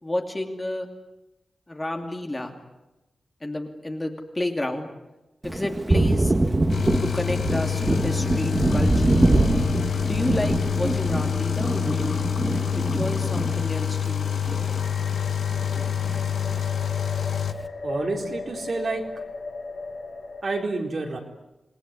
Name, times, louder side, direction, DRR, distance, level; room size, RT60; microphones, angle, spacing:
voice 1, 0.0-0.9 1.7-2.5 3.4-4.9 5.4-6.4 7.0-9.2 10.1-12.2 12.7-14.8, left 1 dB, 15° left, 3 dB, 2.6 m, -30 dB
Thunder, 5.4-15.2 15.5-16.7, right 2 dB, 20° right, 1.3 m, -24 dB
sound 1, 6.7-17.5, left 9 dB, 75° left, 1.0 m, -27 dB
sound 2, 14.8-20.7, left 3 dB, 60° left, 4.6 m, -37 dB
voice 2, 17.8-19.1 20.4-21.2, right 3 dB, 50° right, 2 dB, 4.1 m, -28 dB
27.5 x 20.5 x 9.7 m, 0.99 s
wide cardioid pair, 170°, 0 cm